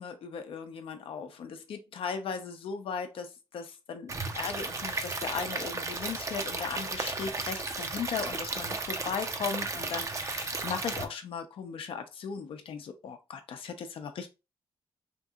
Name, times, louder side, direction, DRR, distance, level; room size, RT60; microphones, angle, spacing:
voice 1, 0.0-14.3, left 6 dB, 70° left, 0.6 m, -37 dB
Stream / Liquid, 4.1-11.1, right 3 dB, 35° right, 0.5 m, -34 dB
2.9 x 2.7 x 2.3 m
cardioid pair, 90°, 9 cm